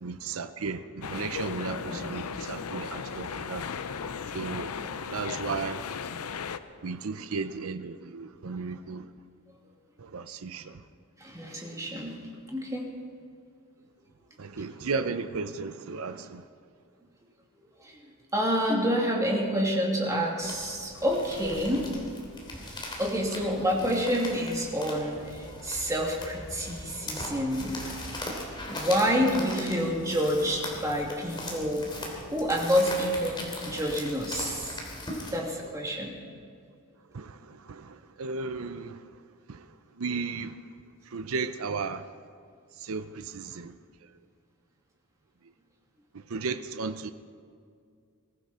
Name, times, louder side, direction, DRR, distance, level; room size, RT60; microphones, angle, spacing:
voice 1, 0.0-3.7 4.3-4.8 5.1-5.8 6.8-9.1 10.0-10.8 14.4-16.5 37.1-39.0 39.5-39.7 40.0-40.6 41.1-42.1 42.8-43.8 46.1-47.1, right 4 dB, 65° right, 0.6 m, -34 dB
sound 1, 1.0-6.6, left 6 dB, 80° left, 0.6 m, -36 dB
voice 2, 11.2-12.2 12.5-12.9 17.8-17.9 18.3-21.9 23.0-27.8 28.6-31.9 32.3-34.7 35.3-36.1, equal, 15° right, 2.5 m, -28 dB
sound 2, 20.4-35.4, left 1 dB, 20° left, 3.1 m, -39 dB
22.0 x 14.5 x 4.3 m
head